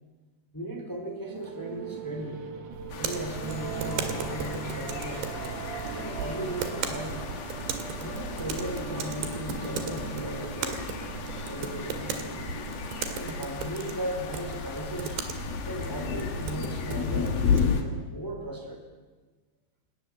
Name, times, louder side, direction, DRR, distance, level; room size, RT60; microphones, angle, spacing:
voice 1, 0.5-2.4 3.0-5.3 5.9-7.3 8.0-10.8 11.4-12.4 13.2-15.2 15.6-17.4 17.8-18.8, right 1 dB, 5° left, 3 dB, 3.2 m, -37 dB
sound 1, 1.3-14.2, right 5 dB, 55° right, 2.9 m, -40 dB
sound 2, 2.7-17.7, right 6 dB, 90° right, 4.3 m, -37 dB
sound 3, 2.9-17.8, left 6 dB, 60° left, 3.7 m, -34 dB
29.0 x 18.5 x 7.4 m, 1.4 s
omnidirectional pair, 5.0 m